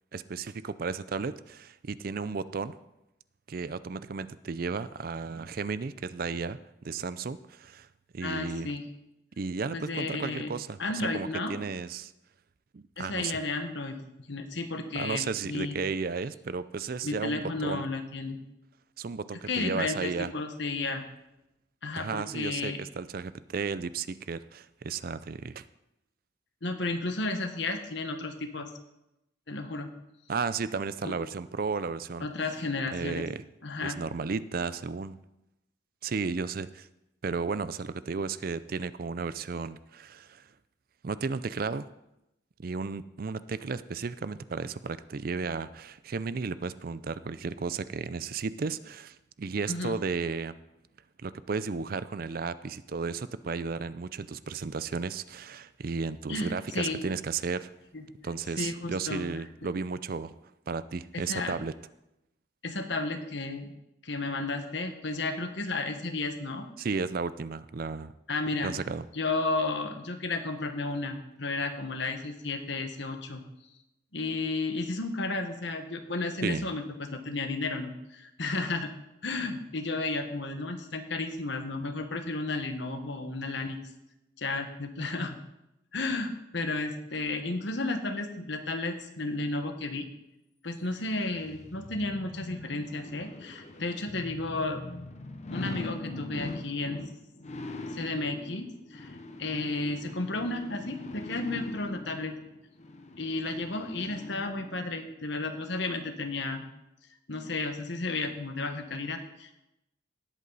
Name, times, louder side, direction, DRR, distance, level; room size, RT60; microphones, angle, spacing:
voice 1, 0.1-2.8 3.5-6.6 6.8-7.9 8.1-8.7 9.4-12.1 12.7-13.3 14.9-17.9 19.0-20.3 22.0-25.6 30.3-32.3 32.9-33.4 33.8-35.2 36.0-36.9 37.2-40.5 41.0-41.9 42.6-50.6 51.2-57.7 58.2-60.3 60.7-61.7 66.8-68.1 68.6-69.1 76.4-76.7, right 4 dB, 50° right, 15 dB, 0.4 m, -34 dB
voice 2, 8.2-8.8 9.7-10.5 10.8-11.5 13.0-15.8 17.0-18.4 19.4-21.0 21.8-22.8 26.6-28.7 29.5-29.9 31.0-31.2 32.2-33.3 33.6-34.0 49.7-49.9 56.3-57.0 57.9-58.0 58.6-59.2 61.1-61.6 62.6-63.7 64.0-66.7 68.3-68.7 69.1-73.4 74.1-78.9 79.2-83.8 84.4-85.4 85.9-90.1 90.6-94.8 95.5-97.0 97.9-102.3 103.2-106.7 107.3-109.6, left 3 dB, 60° left, 6 dB, 1.4 m, -33 dB
sound 1, 91.0-104.9 105.4-105.5, left 2 dB, 35° left, 1.0 m, -42 dB
18.5 x 8.4 x 4.1 m, 0.89 s
head